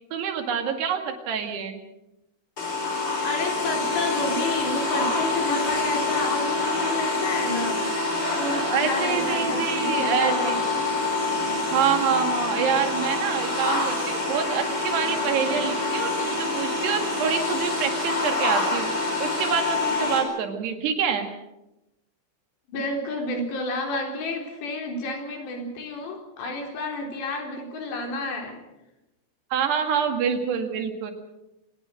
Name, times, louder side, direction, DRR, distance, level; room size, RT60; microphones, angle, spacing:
voice 1, 0.1-1.8 8.7-10.6 11.7-18.9 19.2-21.3 29.5-31.1, right 7 dB, 75° right, 6 dB, 4.2 m, -26 dB
sound 1, 2.6-20.2, left 3 dB, 25° left, 5.6 m, -26 dB
voice 2, 3.2-7.9 8.3-10.9 22.7-28.6, left 2 dB, 85° left, 3 dB, 6.0 m, -30 dB
25.0 x 19.5 x 6.4 m, 0.93 s
omnidirectional pair, 4.8 m